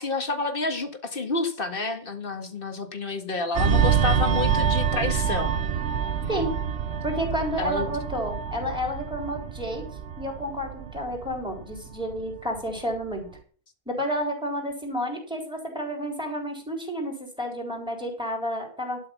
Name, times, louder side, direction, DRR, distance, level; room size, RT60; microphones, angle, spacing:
voice 1, 0.0-5.6 6.2-6.5 7.6-8.0, left 3 dB, 55° left, 6 dB, 1.9 m, -29 dB
sound 1, 3.5-12.6 12.9-13.2, right 7 dB, 90° right, 1.1 m, -27 dB
voice 2, 7.0-9.9 10.2-13.3 13.9-19.0, equal, 5° right, 0 dB, 4.2 m, -30 dB
12.0 x 6.2 x 7.2 m, 0.44 s
omnidirectional pair, 1.1 m